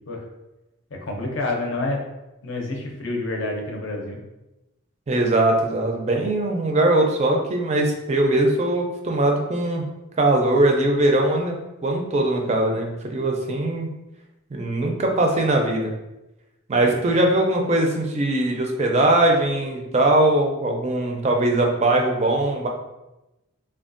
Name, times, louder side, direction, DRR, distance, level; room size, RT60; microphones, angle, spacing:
voice 1, 0.9-2.0 2.4-4.2, left 2 dB, 65° left, 0 dB, 0.6 m, -28 dB
voice 2, 5.1-9.9 10.2-11.6 11.8-13.9 14.5-15.9 16.7-22.7, right 1 dB, 30° right, 2 dB, 0.4 m, -21 dB
3.4 x 2.3 x 2.5 m, 0.98 s
head